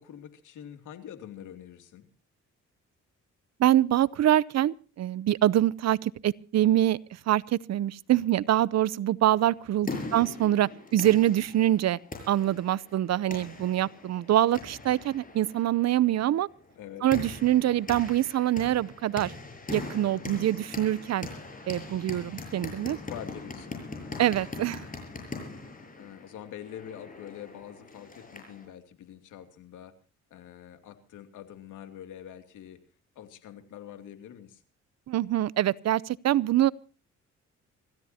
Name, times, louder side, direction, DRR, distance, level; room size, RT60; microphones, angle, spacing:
voice 1, 0.0-2.1 9.9-10.2 16.8-17.1 23.1-23.8 26.0-29.9 30.3-32.8 33.2-34.6, left 10 dB, 85° left, 2.6 m, -45 dB
voice 2, 3.6-7.0 7.3-12.0 12.3-16.5 17.0-19.3 19.7-21.3 21.7-23.0 24.2-24.8 35.1-36.7, right 13 dB, 60° right, 0.7 m, -25 dB
sound 1, 9.4-28.7, left 3 dB, 25° left, 7.7 m, -41 dB
26.5 x 15.5 x 2.9 m
cardioid pair, 90°, 30 cm